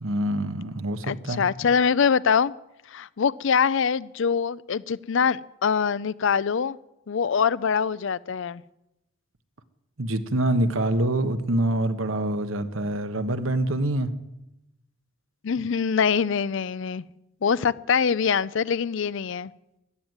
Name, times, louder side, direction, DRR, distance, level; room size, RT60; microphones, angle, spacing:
voice 1, 0.0-1.4 10.0-14.1, right 1 dB, 85° right, 1.3 m, -25 dB
voice 2, 1.0-2.5 2.9-6.8 7.1-8.6 15.4-17.0 17.4-19.5, left 6 dB, 65° left, 0.5 m, -24 dB
14.5 x 10.5 x 9.4 m
head